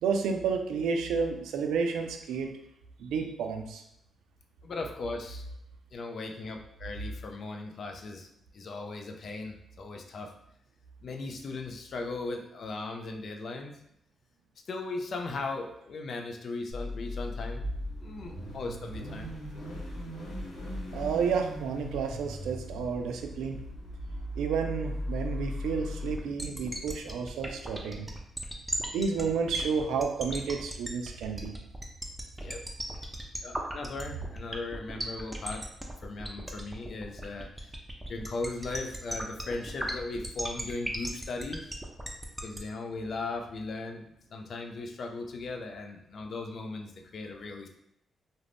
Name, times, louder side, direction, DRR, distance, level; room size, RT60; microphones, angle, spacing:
voice 1, 0.0-2.5 3.0-3.8 20.9-23.6 24.4-28.1 28.9-31.6, right 5 dB, 80° right, 5 dB, 0.3 m, -31 dB
voice 2, 4.6-5.4 5.9-8.3 8.5-10.3 11.0-13.7 14.7-17.6 18.0-19.3 32.4-32.6 33.4-35.6 36.0-37.7 38.1-41.7 42.4-47.7, left 3 dB, 60° left, 3 dB, 0.4 m, -38 dB
Car / Idling / Accelerating revving vroom, 16.7-26.1, left 1 dB, 80° left, 0.8 m, -38 dB
sound 1, 26.1-42.6, right 1 dB, 10° right, 0.5 m, -36 dB
2.4 x 2.0 x 3.3 m, 0.75 s
hypercardioid pair, 45°, 0 cm